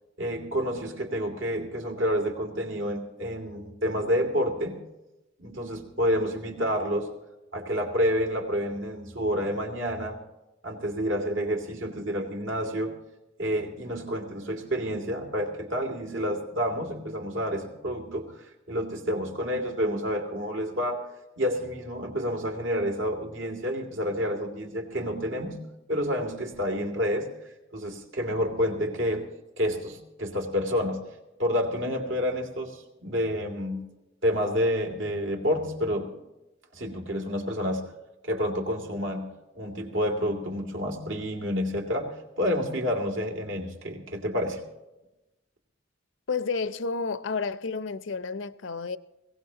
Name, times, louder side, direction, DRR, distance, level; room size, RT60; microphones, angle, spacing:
voice 1, 0.2-4.8 5.4-7.1 7.5-10.2 10.6-12.9 13.4-21.1 21.4-25.6 25.9-27.3 27.7-29.3 29.6-31.0 31.4-33.9 34.2-36.2 36.7-37.8 38.2-39.3 39.5-44.6, equal, 80° right, 2.7 m, -29 dB
voice 2, 46.3-49.0, left 4 dB, 70° left, 0.6 m, -31 dB
21.5 x 17.5 x 2.9 m
head